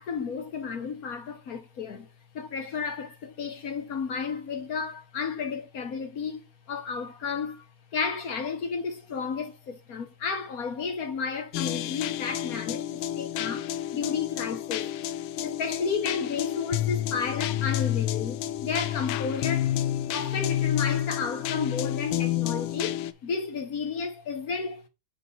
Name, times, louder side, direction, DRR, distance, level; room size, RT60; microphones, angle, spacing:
voice 1, 0.0-7.6 7.9-14.9 15.4-19.7 20.1-24.8, left 5 dB, 55° left, 1.2 m, -32 dB
sound 1, 11.5-23.1, left 12 dB, 80° left, 1.4 m, -30 dB
7.3 x 4.2 x 3.9 m
omnidirectional pair, 2.3 m